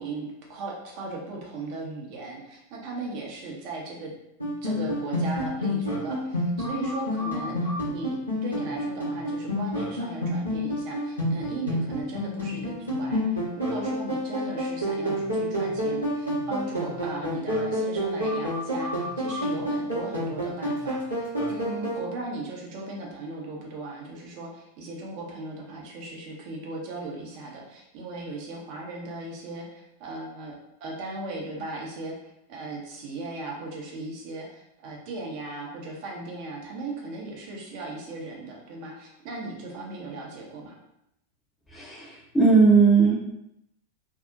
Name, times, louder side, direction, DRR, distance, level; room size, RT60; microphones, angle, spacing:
voice 1, 0.0-4.1 4.6-40.8, right 2 dB, 45° right, -1 dB, 0.5 m, -37 dB
sound 1, 4.4-22.0, equal, 85° left, 0.9 m, -29 dB
voice 2, 41.7-43.1, right 4 dB, 10° left, -3 dB, 0.6 m, -18 dB
2.6 x 2.0 x 2.4 m, 0.81 s
figure-of-eight pair, 90°, 0 cm